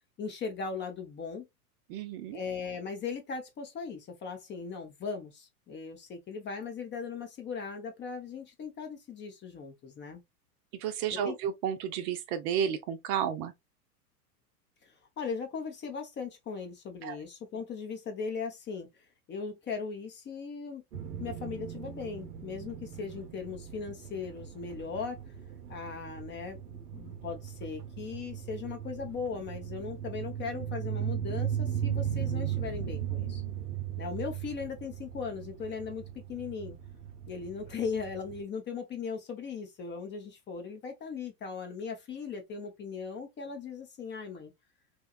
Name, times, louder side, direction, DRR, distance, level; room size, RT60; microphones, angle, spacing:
voice 1, 0.2-1.5 2.3-10.2 11.1-11.4 14.8-20.8 21.2-25.2 25.7-33.4 34.0-36.8 37.3-44.5, left 5 dB, 25° left, 0.6 m, -38 dB
voice 2, 1.9-2.4 10.8-13.5 17.0-17.2, right 8 dB, 45° right, 0.5 m, -32 dB
sound 1, 20.9-38.4, right 9 dB, 90° right, 0.7 m, -37 dB
2.9 x 2.2 x 2.3 m
hypercardioid pair, 105°, 46 cm